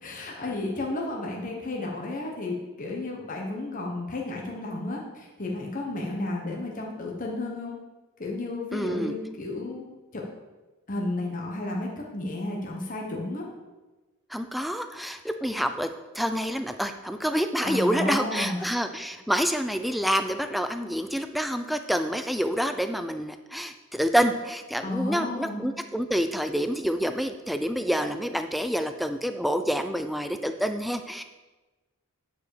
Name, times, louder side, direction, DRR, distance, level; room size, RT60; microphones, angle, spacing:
voice 1, 0.0-7.8 8.2-9.8 10.1-10.2 10.9-13.5 17.6-18.6 19.3-19.4 24.8-25.7, left 2 dB, 40° left, -1 dB, 1.2 m, -32 dB
voice 2, 8.7-9.1 14.3-15.9 16.1-31.2, equal, ahead, 8 dB, 0.4 m, -27 dB
9.6 x 5.0 x 6.5 m, 1.2 s
head